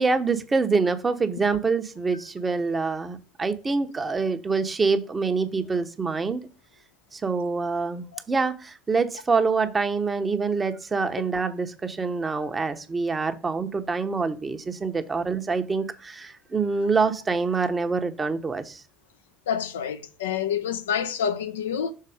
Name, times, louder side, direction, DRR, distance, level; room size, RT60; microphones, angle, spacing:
voice 1, 0.0-6.5 7.1-18.8, right 4 dB, 25° right, 1.0 m, -26 dB
voice 2, 19.5-21.9, left 8 dB, 75° left, 0.5 m, -27 dB
6.7 x 4.2 x 4.9 m
figure-of-eight pair, 60°, 0 cm